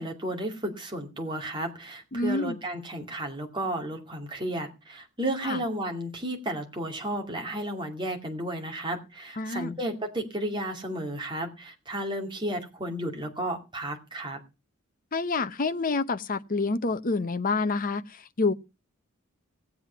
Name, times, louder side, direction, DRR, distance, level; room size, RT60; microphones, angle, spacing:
voice 1, 0.0-14.4, right 1 dB, 20° right, 2.5 m, -33 dB
voice 2, 2.1-2.6 5.5-5.6 9.4-9.8 15.1-18.5, left 3 dB, 40° left, 0.7 m, -28 dB
17.0 x 7.9 x 5.8 m
head